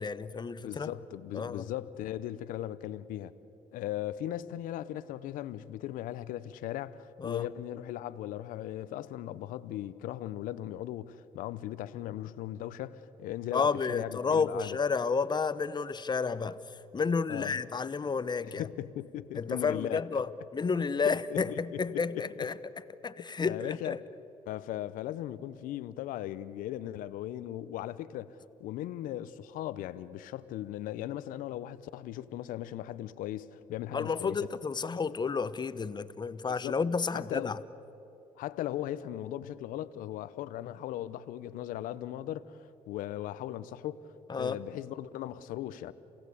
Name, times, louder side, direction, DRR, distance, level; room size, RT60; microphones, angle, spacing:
voice 1, 0.0-0.9 1.3-1.7 7.2-7.4 13.5-16.6 16.9-18.7 19.3-22.6 23.0-24.0 33.9-37.6 44.3-44.6, left 5 dB, 30° left, 0.9 m, -31 dB
voice 2, 0.6-3.3 3.7-14.8 17.3-17.6 18.4-20.2 21.3-22.5 23.5-24.0 24.5-34.4 36.6-36.8 37.1-37.5 38.4-45.9, left 13 dB, 80° left, 0.8 m, -38 dB
28.5 x 17.0 x 8.4 m
supercardioid pair, 70°, 14 cm